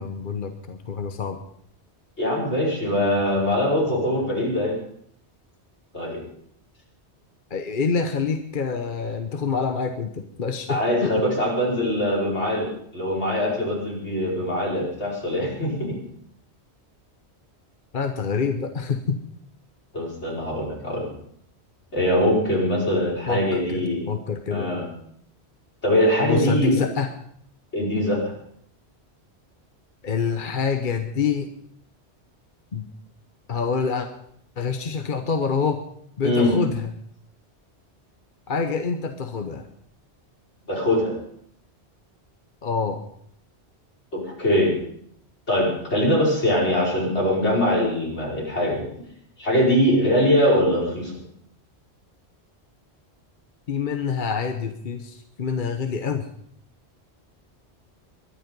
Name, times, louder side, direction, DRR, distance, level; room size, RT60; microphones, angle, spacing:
voice 1, 0.0-1.4 7.5-10.1 10.4-11.1 17.9-19.2 23.3-24.7 26.2-27.1 30.0-31.5 32.7-32.9 33.5-34.1 34.6-35.8 36.2-36.8 38.5-39.7 42.6-43.0 53.7-56.3, left 5 dB, 50° left, 7 dB, 1.1 m, -26 dB
voice 2, 2.2-4.8 5.9-6.2 10.7-16.0 19.9-21.1 21.9-24.1 24.5-24.9 25.8-26.8 27.7-28.3 36.2-36.6 40.7-41.2 44.1-44.7 45.5-48.9 49.4-51.1, equal, 80° left, -3 dB, 5.6 m, -22 dB
22.0 x 11.0 x 5.4 m, 0.67 s
omnidirectional pair, 1.1 m